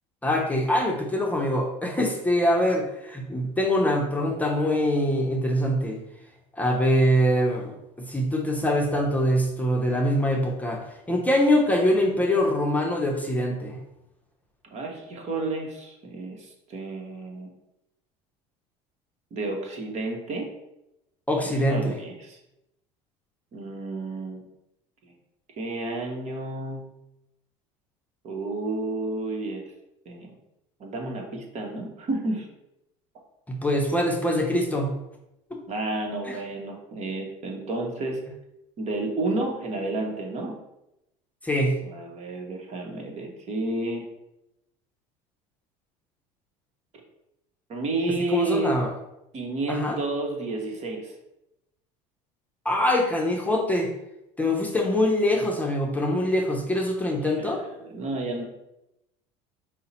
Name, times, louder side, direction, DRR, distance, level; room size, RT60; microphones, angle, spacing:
voice 1, 0.2-6.0 6.6-13.8 21.3-21.9 33.5-34.9 35.5-35.6 36.3-36.4 41.4-41.8 48.3-48.9 49.7-50.0 52.6-53.9 54.4-57.6, left 1 dB, 10° left, 0 dB, 0.7 m, -24 dB
voice 2, 14.7-17.5 19.3-20.5 21.4-22.4 23.5-24.5 25.0-25.1 25.6-26.9 28.2-29.6 30.0-30.3 30.8-32.5 35.7-38.2 38.8-40.6 41.8-44.1 47.7-48.8 49.3-51.1 57.2-58.4, right 2 dB, 45° right, 1 dB, 1.1 m, -31 dB
5.4 x 2.1 x 4.1 m, 0.88 s
supercardioid pair, 95°, 16 cm